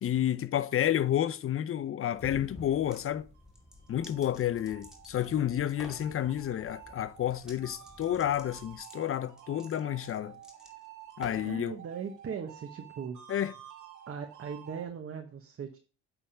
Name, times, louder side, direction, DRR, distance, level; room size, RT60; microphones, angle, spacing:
voice 1, 0.0-3.3 3.9-10.3 11.2-11.8 13.3-13.5, left 11 dB, 45° left, 0.6 m, -30 dB
sound 1, 2.0-8.8, left 1 dB, 20° left, 3.6 m, -53 dB
sound 2, 2.7-3.1 3.5-5.4 5.7-6.1 7.4-7.6 7.8-11.6, equal, ahead, 2.4 m, -52 dB
sound 3, 3.2-14.9, right 11 dB, 75° right, 2.1 m, -51 dB
voice 2, 11.4-13.2 14.1-15.8, right 7 dB, 50° right, 1.1 m, -39 dB
8.6 x 3.5 x 5.5 m
cardioid pair, 90°, 30 cm